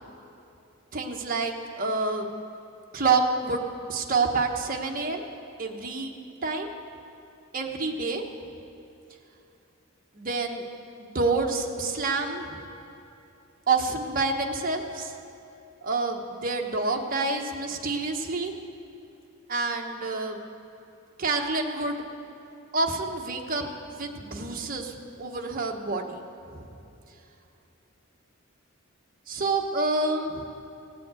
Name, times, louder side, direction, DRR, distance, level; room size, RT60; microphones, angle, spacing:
voice 1, 0.9-2.3 2.9-5.2 5.6-6.1 6.4-6.7 7.5-8.2 10.1-10.6 11.0-12.6 13.7-15.2 15.8-18.5 19.5-20.4 21.2-22.0 22.7-26.2 26.5-26.7 29.3-30.4, right 3 dB, 45° right, 2 dB, 1.2 m, -28 dB
17.0 x 7.6 x 8.2 m, 2.8 s
head